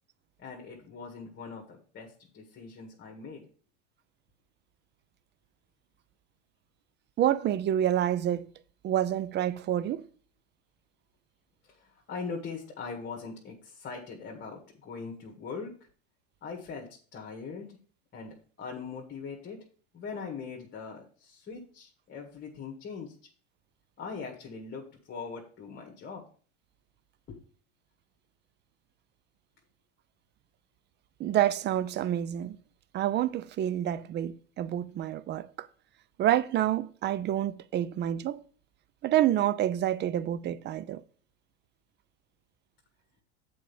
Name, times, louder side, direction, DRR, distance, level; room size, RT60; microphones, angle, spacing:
voice 1, 0.4-3.5 11.6-15.7 16.4-17.8 18.1-19.6 19.9-23.2 24.0-26.2 27.3-27.4, left 5 dB, 30° left, 1.8 m, -41 dB
voice 2, 7.2-8.5 8.8-10.1 31.2-32.6 32.9-35.7 36.2-38.4 39.0-41.0, right 11 dB, 30° right, 0.5 m, -28 dB
7.4 x 4.4 x 7.0 m
supercardioid pair, 110°, 34 cm